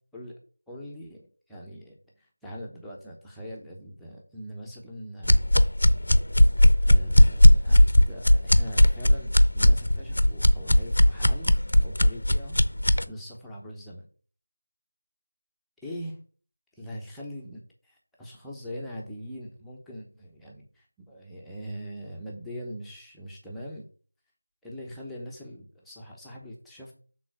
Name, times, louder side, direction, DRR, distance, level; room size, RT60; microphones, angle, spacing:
voice 1, 0.7-1.2 1.5-5.5 6.9-11.5 11.8-12.6 13.1-14.1 15.8-16.2 16.8-23.9 24.6-26.9, equal, ahead, -5 dB, 0.8 m, -41 dB
sound 1, 5.2-13.0, left 1 dB, 65° left, 0.7 m, -18 dB
7.0 x 3.8 x 6.3 m, 0.42 s
figure-of-eight pair, 170°, 0 cm